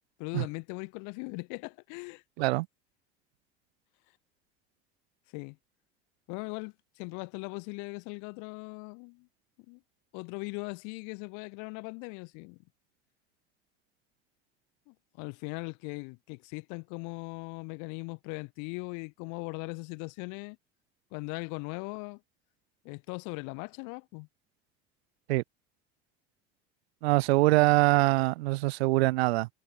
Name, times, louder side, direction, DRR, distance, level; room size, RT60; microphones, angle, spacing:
voice 1, 0.2-2.2 5.3-5.6 6.3-9.3 9.7-9.8 10.1-12.6 14.9-20.6 21.1-22.2 22.8-24.3, left 36 dB, 70° left, 6.9 m, -39 dB
voice 2, 27.0-29.5, right 21 dB, 80° right, 1.1 m, -24 dB
hypercardioid pair, 80°, 31 cm